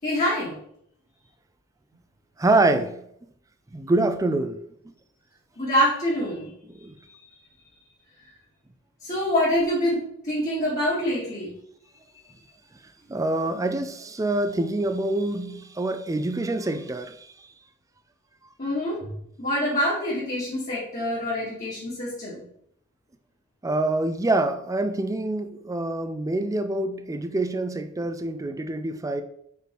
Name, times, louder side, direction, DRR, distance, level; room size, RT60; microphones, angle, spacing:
voice 1, 0.0-0.5 5.6-6.5 9.0-10.0 10.2-11.5 12.1-12.4 18.6-19.0 19.4-22.4, equal, 40° left, 2.0 m, -25 dB
voice 2, 2.4-3.0 3.7-4.6 6.7-6.9 13.1-17.2 23.6-29.2, right 2 dB, 15° right, 0.4 m, -25 dB
5.2 x 4.6 x 4.5 m
head